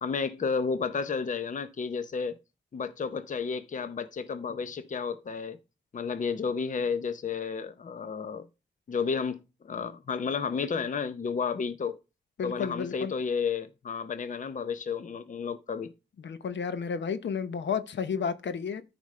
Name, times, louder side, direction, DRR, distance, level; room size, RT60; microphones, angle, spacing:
voice 1, 0.0-2.4 2.7-5.6 5.9-8.5 8.9-9.4 9.6-12.0 12.4-15.9, left 5 dB, 45° left, 0.6 m, -32 dB
voice 2, 12.4-13.1 16.2-18.8, left 6 dB, 80° left, 0.8 m, -32 dB
13.0 x 5.2 x 3.2 m
wide cardioid pair, 165°, 18 cm